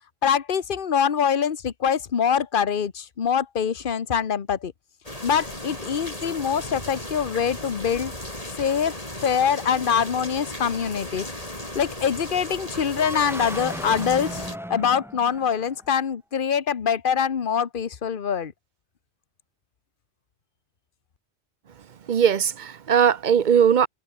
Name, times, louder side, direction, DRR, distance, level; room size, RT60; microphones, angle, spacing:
voice 1, 0.2-4.7 5.2-8.1 8.6-11.3 11.7-14.4 14.7-18.5, left 7 dB, 50° left, 1.2 m, -24 dB
sound 1, 5.0-14.6, left 1 dB, 35° left, 5.9 m, -36 dB
sound 2, 12.9-15.9, equal, ahead, 4.2 m, -36 dB
voice 2, 22.1-23.9, right 8 dB, 50° right, 0.8 m, -19 dB
omnidirectional pair, 1.1 m